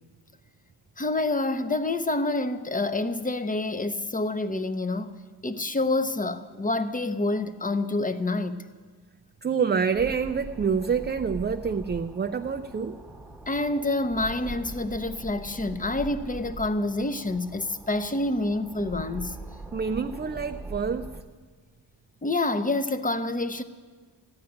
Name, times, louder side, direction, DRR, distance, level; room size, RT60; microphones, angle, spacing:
voice 1, 1.0-8.6 13.5-19.4 22.2-23.6, left 2 dB, 20° left, 0.8 m, -27 dB
voice 2, 9.4-13.0 19.7-21.1, right 6 dB, 25° right, 0.4 m, -27 dB
sound 1, 9.9-21.2, right 3 dB, ahead, 1.2 m, -42 dB
14.5 x 9.8 x 9.7 m
cardioid pair, 90°, 45 cm